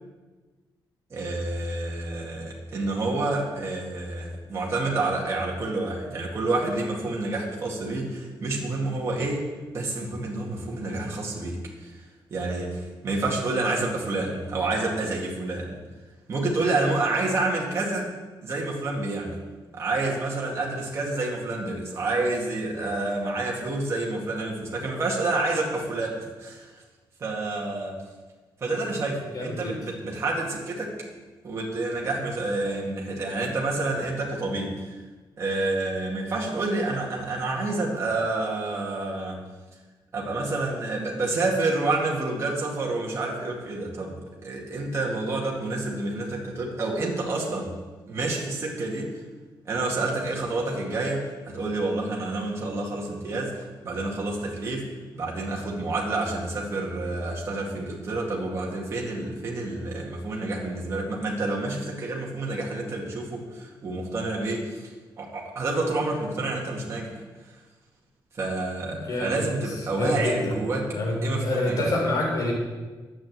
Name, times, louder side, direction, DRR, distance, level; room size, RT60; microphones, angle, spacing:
voice 1, 1.1-9.5 9.7-12.0 12.3-15.8 16.3-18.1 18.4-19.4 19.7-26.7 27.2-28.0 28.6-30.9 31.4-34.9 35.4-39.4 40.1-44.2 44.4-47.8 48.1-49.1 49.7-53.6 53.8-54.9 55.1-64.9 65.2-67.2 68.3-70.9 71.2-71.9, right 2 dB, 30° right, -3 dB, 2.1 m, -28 dB
voice 2, 29.3-29.8 68.9-69.5 69.9-70.6 70.9-72.5, left 2 dB, 50° left, -1 dB, 3.8 m, -27 dB
10.5 x 7.8 x 7.8 m, 1.3 s
wide cardioid pair, 165°, 8 cm